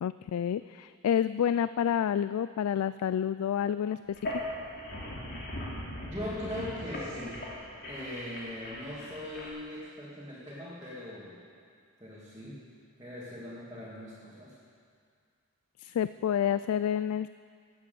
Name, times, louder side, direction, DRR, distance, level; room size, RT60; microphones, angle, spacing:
voice 1, 0.0-4.0 15.8-17.3, left 9 dB, 85° left, 14 dB, 0.3 m, -29 dB
sound 1, 4.1-9.5, left 1 dB, 50° left, 3.0 m, -39 dB
voice 2, 6.0-7.4 7.8-11.5 12.0-12.7 13.0-14.6, left 1 dB, 15° right, -9 dB, 2.4 m, -40 dB
17.0 x 8.0 x 6.9 m, 2.2 s
head